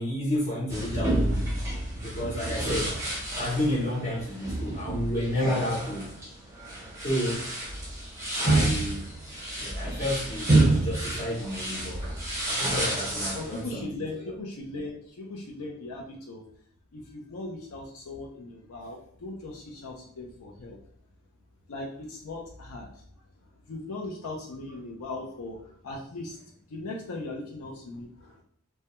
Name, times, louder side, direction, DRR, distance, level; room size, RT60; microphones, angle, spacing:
voice 1, 0.0-1.5 2.0-3.0 3.4-6.1 7.0-7.5 8.4-9.1 9.6-12.0 12.5-14.4, left 1 dB, 35° left, -8 dB, 0.7 m, -31 dB
sound 1, 0.7-13.6, right 2 dB, 15° right, 0.6 m, -29 dB
voice 2, 13.3-16.4 16.9-20.8 21.7-22.9 23.7-28.4, left 2 dB, 85° left, -1 dB, 0.5 m, -39 dB
2.2 x 2.1 x 2.9 m, 0.64 s
head